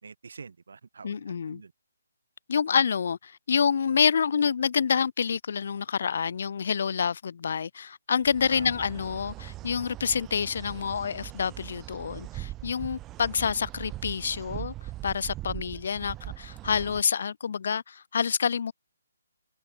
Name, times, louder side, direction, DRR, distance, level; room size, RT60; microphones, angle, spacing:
voice 1, 0.0-1.7 8.5-8.9, right 5 dB, 60° right, 1.1 m, -46 dB
voice 2, 1.0-1.6 2.5-14.7 15.0-18.7, left 6 dB, 50° left, 0.4 m, -27 dB
sound 1, 8.2-17.0, right 16 dB, 15° right, 0.5 m, -41 dB
figure-of-eight pair, 140°, 0 cm